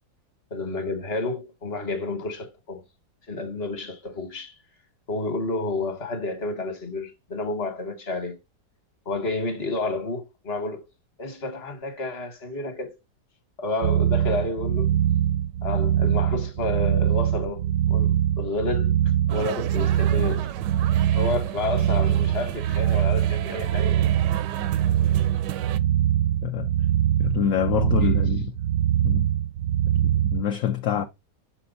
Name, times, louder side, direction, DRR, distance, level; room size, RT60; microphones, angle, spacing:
voice 1, 0.5-2.8 3.3-4.6 5.1-8.4 9.0-10.8 11.2-13.0 13.6-14.9 15.6-18.9 19.3-20.5 21.1-24.1 28.0-28.2, left 2 dB, 40° left, 1.5 m, -30 dB
sound 1, 13.8-30.4, right 11 dB, 70° right, 0.9 m, -23 dB
sound 2, 19.3-25.8, right 12 dB, 85° right, 1.2 m, -34 dB
voice 2, 27.2-28.5 29.0-29.3 29.9-31.1, left 9 dB, 65° left, 0.9 m, -26 dB
6.9 x 4.3 x 3.9 m
omnidirectional pair, 1.8 m